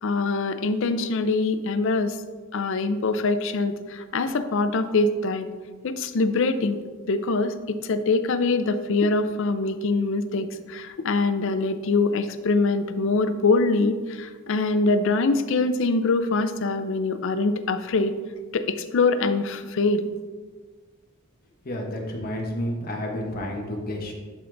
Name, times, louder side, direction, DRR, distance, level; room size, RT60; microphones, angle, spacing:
voice 1, 0.0-2.2 2.5-5.5 5.8-6.8 7.1-18.1 18.5-20.1, left 3 dB, 60° left, 11 dB, 0.5 m, -24 dB
voice 2, 21.6-24.1, left 1 dB, 45° left, 0 dB, 1.2 m, -30 dB
11.5 x 3.9 x 3.4 m, 1.5 s
head